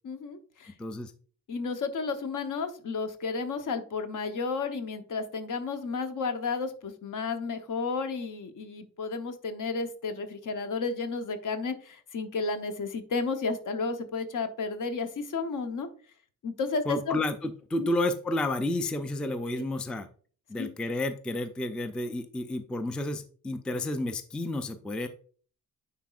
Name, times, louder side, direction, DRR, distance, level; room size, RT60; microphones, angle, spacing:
voice 1, 0.0-0.7 1.5-15.9 16.4-17.2 17.8-17.9 19.5-19.7 20.6-20.7, left 4 dB, 60° left, 7 dB, 0.9 m, -32 dB
voice 2, 0.8-1.1 16.9-20.1 20.5-25.1, left 1 dB, 5° left, 9 dB, 0.3 m, -31 dB
9.5 x 4.1 x 2.4 m, 0.43 s
wide cardioid pair, 140°, 35 cm